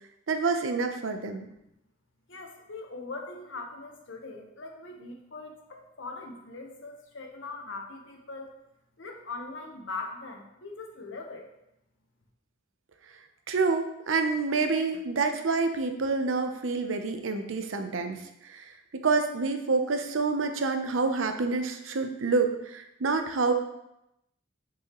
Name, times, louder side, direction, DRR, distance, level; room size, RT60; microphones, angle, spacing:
voice 1, 0.3-1.5 13.5-18.6 19.0-23.5, right 4 dB, 85° right, 6 dB, 0.7 m, -27 dB
voice 2, 2.3-8.5 9.0-11.5, left 3 dB, 70° left, 2 dB, 1.0 m, -41 dB
6.2 x 5.6 x 3.0 m, 0.85 s
head